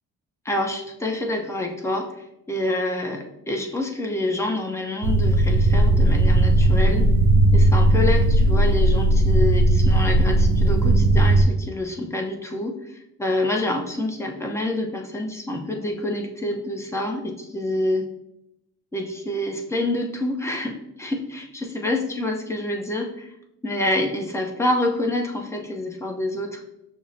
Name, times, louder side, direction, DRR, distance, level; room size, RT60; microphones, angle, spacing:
voice 1, 0.4-7.1 7.5-18.1 18.9-23.3 23.6-26.6, left 1 dB, 10° left, 2 dB, 0.7 m, -27 dB
sound 1, 5.0-11.4, right 1 dB, 85° right, 0.5 m, -17 dB
6.2 x 2.1 x 2.6 m, 0.85 s
cardioid pair, 90°, 30 cm